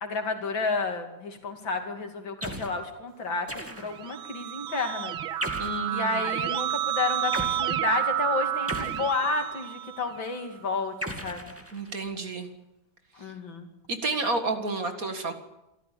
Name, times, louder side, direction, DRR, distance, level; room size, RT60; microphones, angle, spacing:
voice 1, 0.0-5.1 5.9-10.9 11.2-11.6 13.2-13.7, left 3 dB, 70° left, 5 dB, 3.4 m, -31 dB
sound 1, 2.4-2.8 3.5-4.1 5.4-5.9 7.3-7.6 8.7-9.6 11.0-12.1, right 1 dB, 5° right, 2.2 m, -36 dB
Keyboard (musical), 3.7-10.4, right 11 dB, 85° right, 1.9 m, -30 dB
voice 2, 5.6-6.3 11.7-12.5 13.2-13.3 13.9-15.3, right 3 dB, 45° right, 7 dB, 2.3 m, -30 dB
26.0 x 14.0 x 8.6 m, 0.97 s
omnidirectional pair, 2.2 m